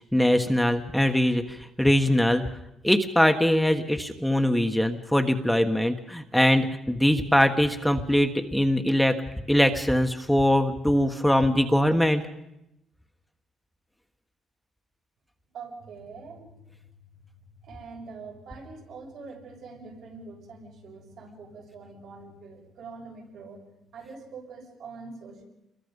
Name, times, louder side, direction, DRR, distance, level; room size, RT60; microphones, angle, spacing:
voice 1, 0.1-2.4 2.8-9.2 9.5-12.2, equal, 5° left, 5 dB, 1.4 m, -22 dB
voice 2, 15.5-16.5 17.6-23.6 23.9-25.4, right 4 dB, 75° right, -1 dB, 7.4 m, -44 dB
28.0 x 22.0 x 5.4 m, 0.86 s
cardioid pair, 90°, 0 cm